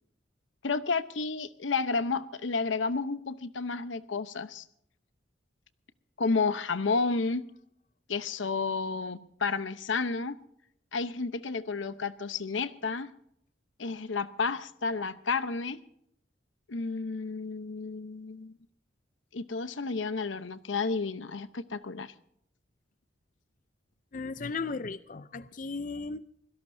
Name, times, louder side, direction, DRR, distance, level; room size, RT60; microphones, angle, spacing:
voice 1, 0.6-4.6 6.2-7.5 8.1-10.3 10.9-13.1 13.8-15.8 16.7-18.5 19.3-22.1, left 4 dB, 90° left, 13 dB, 0.9 m, -31 dB
voice 2, 24.1-26.2, left 4 dB, 45° left, 14 dB, 0.5 m, -36 dB
25.0 x 17.0 x 2.7 m, 0.72 s
head